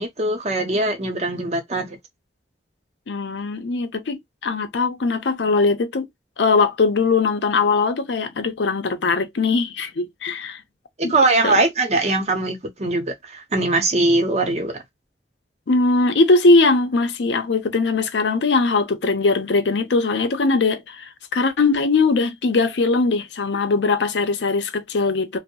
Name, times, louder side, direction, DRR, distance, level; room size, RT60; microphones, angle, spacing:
voice 1, 0.0-2.0 11.0-14.8, right 2 dB, 40° right, 0.7 m, -21 dB
voice 2, 3.1-6.1 6.4-10.6 11.0-11.2 11.4-11.6 15.7-25.4, left 3 dB, 85° left, 0.6 m, -20 dB
2.6 x 2.0 x 2.8 m
head